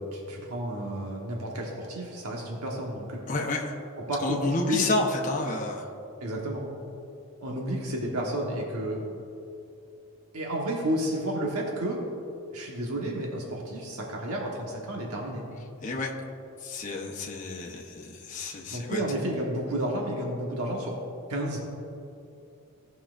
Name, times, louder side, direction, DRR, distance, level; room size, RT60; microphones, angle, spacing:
voice 1, 0.0-3.2 4.0-4.9 6.2-6.7 7.4-9.0 10.3-12.0 12.5-15.4 18.7-21.0 21.3-21.6, right 1 dB, 90° right, -2 dB, 1.2 m, -31 dB
voice 2, 3.3-3.7 4.2-5.8 15.8-16.1 16.6-19.0, left 2 dB, 35° left, -1 dB, 0.8 m, -30 dB
17.0 x 5.6 x 2.5 m, 2.7 s
head